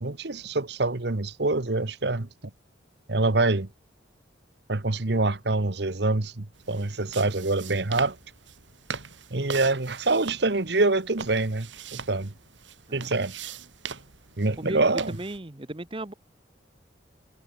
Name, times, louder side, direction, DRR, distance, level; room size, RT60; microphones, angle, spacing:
voice 1, 0.0-2.3 3.1-3.7 4.7-8.2 9.3-12.3 12.9-13.3 14.4-15.2, right 2 dB, 65° right, 1.3 m, -25 dB
sound 1, 6.5-15.4, right 6 dB, 85° right, 3.7 m, -41 dB
voice 2, 14.6-16.1, right 1 dB, 25° right, 1.0 m, -36 dB
head